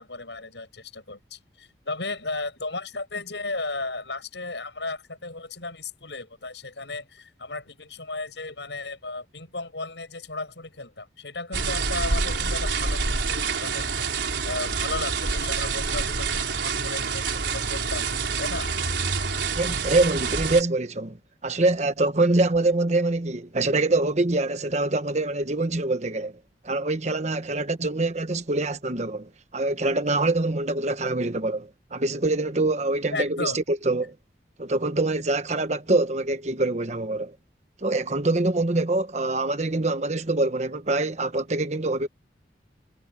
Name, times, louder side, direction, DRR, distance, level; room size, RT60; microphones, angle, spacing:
voice 1, 0.0-18.7 19.1-19.3 33.1-33.6, left 3 dB, 75° left, 7.8 m, -35 dB
sound 1, 11.5-20.6, right 4 dB, 85° right, 3.9 m, -27 dB
voice 2, 19.5-21.2 21.4-26.3 26.6-34.1 34.6-37.3 37.8-42.1, right 2 dB, 40° right, 1.2 m, -25 dB
head